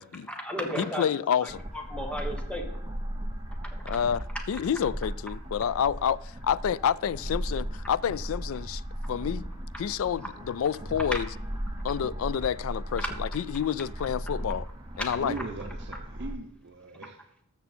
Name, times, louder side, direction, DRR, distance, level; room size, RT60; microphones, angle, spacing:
voice 1, 0.3-1.1 1.4-2.7 3.5-4.1 10.2-10.3 11.1-11.2 11.8-11.9 13.0-13.1 14.0-14.1 15.0-15.1, equal, 5° left, 1.3 m, -35 dB
voice 2, 0.8-1.6 3.9-8.8 9.1-9.5 9.8-11.2 11.8-14.7 15.0-15.3, left 8 dB, 70° left, 0.3 m, -29 dB
sound 1, 1.5-16.3, equal, 15° right, 0.9 m, -37 dB
voice 3, 15.1-17.4, right 3 dB, 50° right, 0.8 m, -40 dB
13.0 x 7.0 x 4.3 m
head